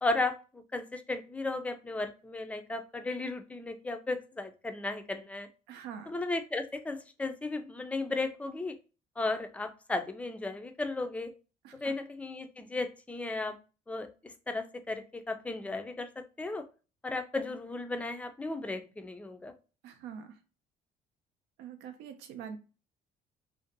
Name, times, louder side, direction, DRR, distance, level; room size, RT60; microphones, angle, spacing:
voice 1, 0.0-5.5 6.1-8.7 9.2-11.3 11.8-13.6 13.9-16.1 16.4-16.6 17.0-19.5, left 2 dB, 10° left, 7 dB, 0.3 m, -35 dB
voice 2, 5.7-6.1 11.6-11.9 19.8-20.3 21.6-22.6, right 8 dB, 90° right, 8 dB, 0.5 m, -44 dB
2.6 x 2.1 x 2.5 m, 0.33 s
cardioid pair, 110°, 17 cm